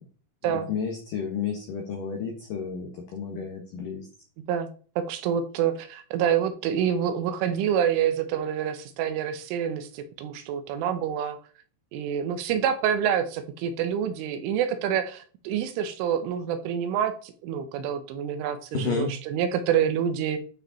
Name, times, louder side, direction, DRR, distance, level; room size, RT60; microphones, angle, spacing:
voice 1, 0.4-4.1 18.7-19.1, left 6 dB, 80° left, 2 dB, 1.9 m, -31 dB
voice 2, 4.4-4.7 5.0-11.4 11.9-20.4, right 9 dB, 80° right, 9 dB, 3.2 m, -27 dB
12.5 x 4.9 x 4.1 m, 0.40 s
omnidirectional pair, 6.0 m